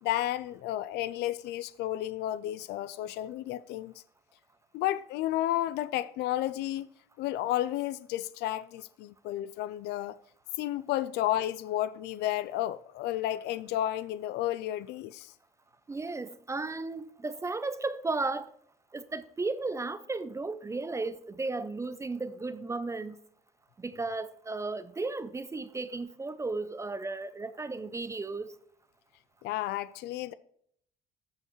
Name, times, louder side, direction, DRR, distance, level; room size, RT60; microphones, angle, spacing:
voice 1, 0.0-3.9 4.7-6.9 7.2-10.2 10.6-15.3 29.4-30.3, left 13 dB, 80° left, 0.4 m, -32 dB
voice 2, 15.9-18.5 18.9-23.2 23.8-28.5, right 3 dB, 15° right, 0.5 m, -34 dB
14.0 x 5.5 x 3.1 m
cardioid pair, 110°, 17 cm